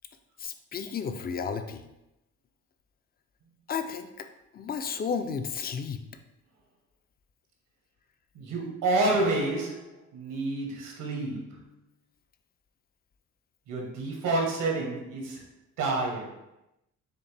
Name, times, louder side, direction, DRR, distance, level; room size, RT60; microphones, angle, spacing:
voice 1, 0.4-1.8 3.7-4.3 4.5-6.0, left 6 dB, 30° left, 9 dB, 0.4 m, -33 dB
voice 2, 8.3-11.6 13.7-15.4 15.8-16.3, right 2 dB, 90° right, -1 dB, 1.1 m, -29 dB
5.2 x 2.1 x 3.3 m, 0.92 s
cardioid pair, 90°, 30 cm